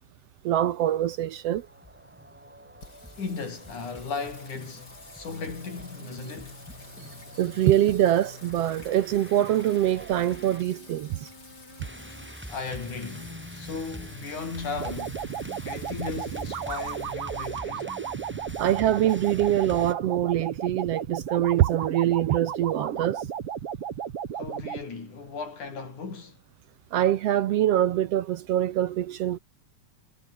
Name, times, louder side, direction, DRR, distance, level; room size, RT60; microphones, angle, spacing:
voice 1, 0.4-1.7 7.4-11.2 18.6-23.2 26.9-29.4, right 12 dB, 70° right, 1.7 m, -24 dB
sound 1, 1.2-19.9, equal, 5° right, 7.0 m, -45 dB
Singing, 2.8-20.4, left 3 dB, 30° left, 5.6 m, -48 dB
voice 2, 3.2-6.6 12.5-15.2 15.6-18.0 24.3-26.4, left 4 dB, 85° left, 6.8 m, -36 dB
sound 2, 14.8-24.8, right 8 dB, 55° right, 2.6 m, -34 dB
omnidirectional pair, 3.4 m